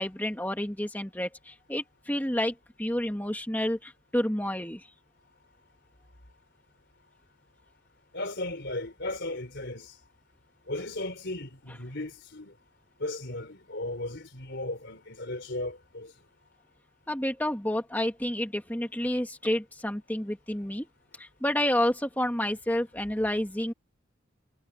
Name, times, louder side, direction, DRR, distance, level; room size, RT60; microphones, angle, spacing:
voice 1, 0.0-4.9 17.1-20.9 21.2-23.7, left 1 dB, 10° left, 2.0 m, -29 dB
voice 2, 8.1-9.9 10.7-12.5 13.0-16.1, left 2 dB, 60° left, 4.3 m, -36 dB
head